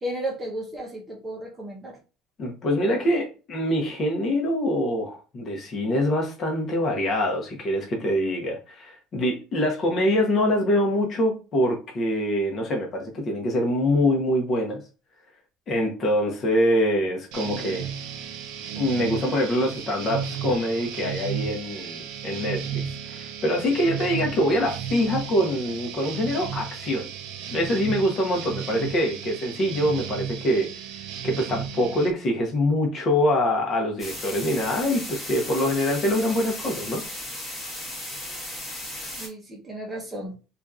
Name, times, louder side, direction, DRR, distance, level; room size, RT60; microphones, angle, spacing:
voice 1, 0.0-2.0 38.3-38.4 39.0-40.4, right 1 dB, 15° right, 0.7 m, -34 dB
voice 2, 2.4-14.8 15.7-17.9 18.7-27.1 27.5-30.7 31.2-37.0, left 1 dB, 35° left, 0.8 m, -24 dB
sound 1, 17.3-32.1, right 8 dB, 80° right, 0.4 m, -34 dB
sound 2, 34.0-39.3, left 1 dB, 15° left, 1.2 m, -36 dB
2.7 x 2.4 x 2.3 m
cardioid pair, 140°, 0 cm